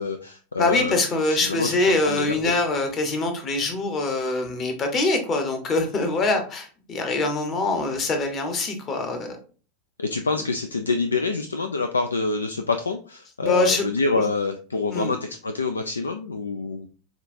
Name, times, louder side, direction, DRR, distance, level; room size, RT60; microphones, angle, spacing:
voice 1, 0.0-1.0 1.3-2.5 10.0-16.9, left 4 dB, 75° left, 7 dB, 0.3 m, -26 dB
voice 2, 0.6-9.4 13.4-13.8 14.1-14.2 14.9-15.1, left 2 dB, 30° left, 6 dB, 1.0 m, -24 dB
7.1 x 2.4 x 2.6 m, 0.39 s
figure-of-eight pair, 85°, 0 cm